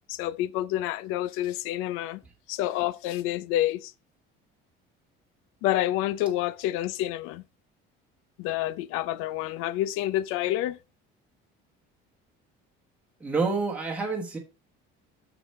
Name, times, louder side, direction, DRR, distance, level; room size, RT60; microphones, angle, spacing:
voice 1, 0.1-2.2 2.5-3.9 5.6-7.4 8.4-10.8, left 14 dB, 80° left, 0.6 m, -28 dB
voice 2, 13.2-14.4, right 4 dB, 5° right, 1.2 m, -28 dB
6.9 x 6.1 x 4.2 m
cardioid pair, 160°, 21 cm